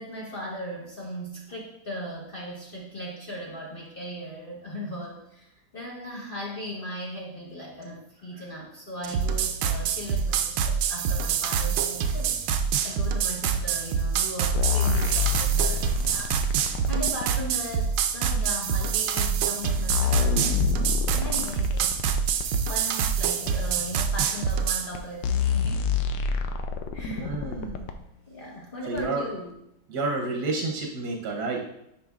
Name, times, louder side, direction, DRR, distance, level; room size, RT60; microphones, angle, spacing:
voice 1, 0.0-5.5 5.7-16.3 16.9-22.0 22.4-25.8 26.9-27.2 28.3-29.6, equal, 35° left, -3 dB, 0.9 m, -38 dB
sound 1, 9.0-24.9, right 7 dB, 80° right, 1.3 m, -26 dB
sound 2, 14.6-17.3 18.3-18.4 19.2-19.3 19.6-22.6 23.5-23.6 24.5-24.6 24.9-25.0 25.2-28.0 29.0-29.1, left 6 dB, 75° left, 1.2 m, -27 dB
voice 2, 27.0-27.8 28.9-29.2 29.9-31.6, right 3 dB, 60° right, 1 dB, 1.2 m, -30 dB
10.0 x 4.7 x 2.3 m, 0.79 s
omnidirectional pair, 2.2 m